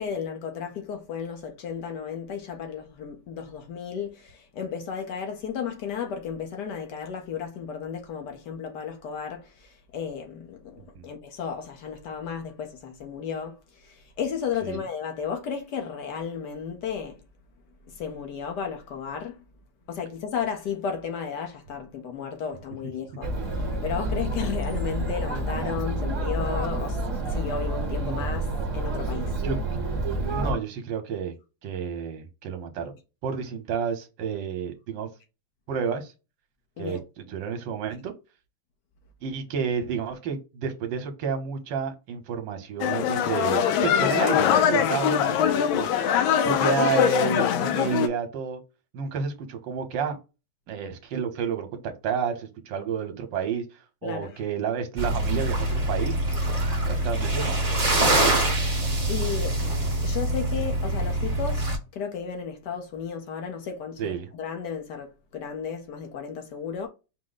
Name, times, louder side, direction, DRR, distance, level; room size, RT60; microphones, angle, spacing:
voice 1, 0.0-17.2 17.9-19.4 19.9-27.0 27.3-28.4 28.7-29.3 36.8-37.0 54.0-54.4 59.1-66.9, left 7 dB, 65° left, 1.2 m, -34 dB
Chatter, 23.2-30.5, right 2 dB, 50° right, 1.1 m, -28 dB
voice 2, 29.1-29.6 30.2-31.4 31.6-32.9 33.2-35.1 35.7-36.1 36.8-38.1 39.2-46.0 46.4-48.6 48.9-50.2 50.7-53.7 54.0-56.2 56.9-57.6 58.1-58.5 64.0-64.3, right 6 dB, 70° right, 1.5 m, -30 dB
sound 1, 42.8-48.1, left 9 dB, 85° left, 1.4 m, -22 dB
sound 2, 55.0-61.8, right 1 dB, 30° right, 0.8 m, -25 dB
4.9 x 2.1 x 3.9 m
omnidirectional pair, 2.2 m